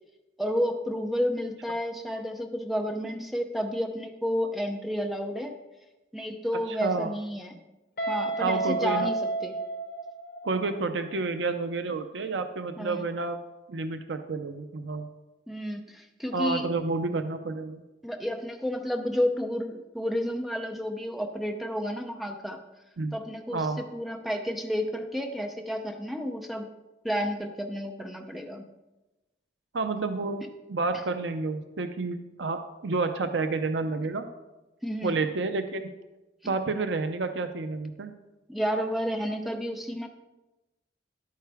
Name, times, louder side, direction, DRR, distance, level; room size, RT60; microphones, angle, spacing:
voice 1, 0.4-5.5 6.1-7.6 8.1-9.5 12.8-13.1 15.5-16.7 18.0-22.6 23.1-26.7 27.0-28.6 34.8-35.2 38.5-40.1, equal, ahead, 4 dB, 0.6 m, -31 dB
voice 2, 6.7-7.1 8.4-9.1 10.4-13.4 13.7-15.1 16.3-17.8 23.0-23.1 23.5-23.8 29.7-30.4 30.7-34.3 35.0-35.9 36.5-38.1, right 3 dB, 80° right, 8 dB, 0.6 m, -30 dB
Guitar, 8.0-10.8, right 2 dB, 60° left, 3.3 m, -31 dB
11.5 x 9.3 x 3.5 m, 1.1 s
head